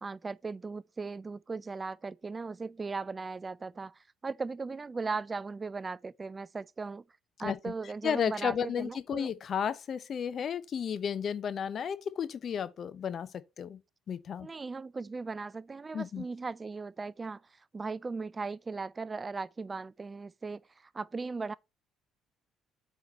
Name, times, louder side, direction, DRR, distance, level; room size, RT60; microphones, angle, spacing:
voice 1, 0.0-7.0 7.4-9.3 14.4-21.5, right 4 dB, 30° right, 0.4 m, -38 dB
voice 2, 8.0-13.8 14.1-14.5 15.9-16.2, left 8 dB, 50° left, 0.8 m, -33 dB
8.1 x 4.3 x 4.3 m
supercardioid pair, 70°, 0 cm